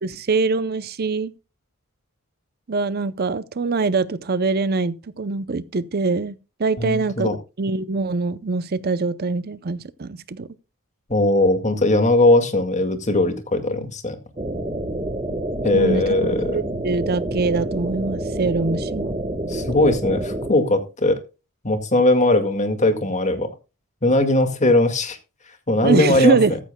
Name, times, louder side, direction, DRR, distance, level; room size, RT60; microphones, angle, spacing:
voice 1, 0.0-1.3 2.7-7.3 7.6-10.5 15.7-19.2 25.8-26.6, right 4 dB, 45° right, 0.6 m, -23 dB
voice 2, 6.8-7.4 11.1-14.2 15.6-16.6 19.5-21.2 21.6-23.5 24.0-25.2 25.7-26.4, left 2 dB, 35° left, 1.9 m, -19 dB
sound 1, 14.4-20.5, right 1 dB, 25° right, 1.3 m, -28 dB
14.5 x 13.5 x 2.2 m
head